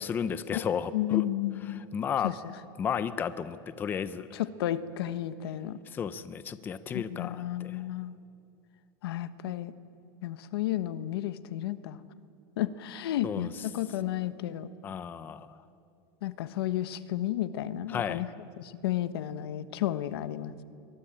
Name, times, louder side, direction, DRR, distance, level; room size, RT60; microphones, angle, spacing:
voice 1, 0.0-1.2 1.9-2.3 2.8-4.4 5.9-7.8 13.2-13.5 14.8-15.5 17.9-18.2, left 7 dB, 15° left, 14 dB, 0.5 m, -33 dB
voice 2, 0.9-1.9 2.2-2.3 4.3-5.8 6.9-8.2 9.0-9.7 10.2-12.0 12.6-14.7 16.2-18.3 18.6-20.5, left 13 dB, 80° left, 13 dB, 1.1 m, -32 dB
23.0 x 20.5 x 8.8 m, 2.5 s
supercardioid pair, 170°, 12 cm